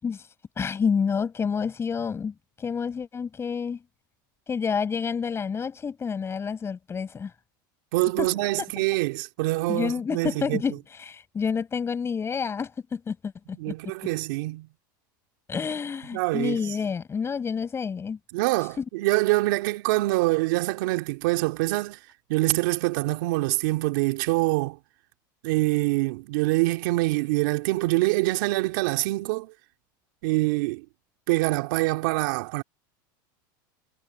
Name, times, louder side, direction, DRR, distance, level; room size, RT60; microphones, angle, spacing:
voice 1, 0.6-3.8 4.5-7.3 8.2-8.3 9.7-13.3 13.7-13.8 15.5-18.2 18.8-18.9, left 6 dB, 25° left, 6.3 m, -29 dB
voice 2, 7.9-10.6 13.5-14.7 16.1-16.6 18.3-22.0 22.3-24.8 25.4-29.5 30.2-30.8 31.3-32.6, right 22 dB, 70° right, 2.9 m, -25 dB
supercardioid pair, 110°, 11 cm